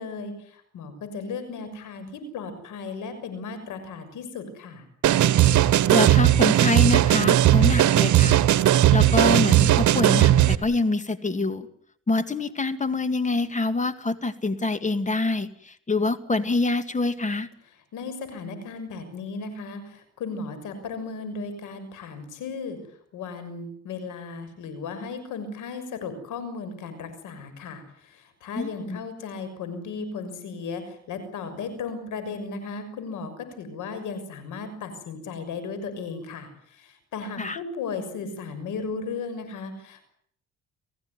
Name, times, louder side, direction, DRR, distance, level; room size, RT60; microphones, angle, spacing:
voice 1, 0.0-4.8 17.9-22.8 23.1-40.0, left 4 dB, 85° left, 10 dB, 6.5 m, -35 dB
sound 1, 5.0-10.6, right 12 dB, 70° right, 1.3 m, -18 dB
voice 2, 5.9-8.4 8.9-11.7 12.1-17.5 28.6-29.0 37.4-37.6, left 3 dB, 25° left, 11 dB, 2.1 m, -26 dB
28.5 x 16.0 x 9.6 m, 0.67 s
cardioid pair, 90°, 30 cm